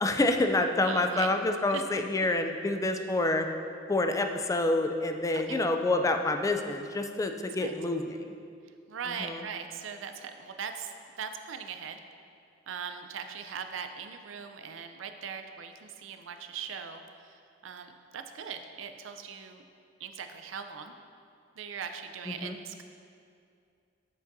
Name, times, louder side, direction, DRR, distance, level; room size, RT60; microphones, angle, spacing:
voice 1, 0.0-3.5 3.9-8.3 9.2-9.4 22.3-22.6, left 2 dB, 15° left, 6 dB, 0.3 m, -28 dB
voice 2, 0.8-1.3 1.7-1.8 3.0-3.1 5.3-5.6 7.6-7.7 8.9-10.9 11.2-12.0 12.7-19.6 20.0-20.9 21.6-22.8, right 6 dB, 90° right, 7 dB, 0.5 m, -40 dB
7.8 x 7.5 x 2.7 m, 2.4 s
head